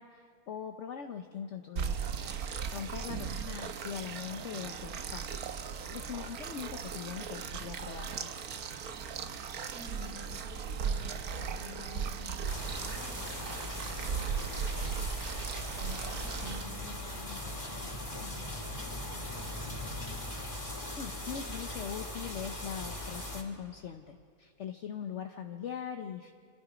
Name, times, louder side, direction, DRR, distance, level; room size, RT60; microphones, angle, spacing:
voice 1, 0.0-2.0 2.4-5.3 5.9-8.3 20.9-26.3, left 8 dB, 55° left, 6 dB, 1.1 m, -41 dB
sound 1, 1.8-16.6, right 6 dB, 80° right, 1.5 m, -37 dB
voice 2, 3.0-3.5 9.7-19.9, left 1 dB, 50° right, -2 dB, 5.4 m, -50 dB
sound 2, 12.5-23.4, left 1 dB, 20° left, 2.1 m, -40 dB
26.5 x 26.5 x 5.0 m, 2.2 s
omnidirectional pair, 1.6 m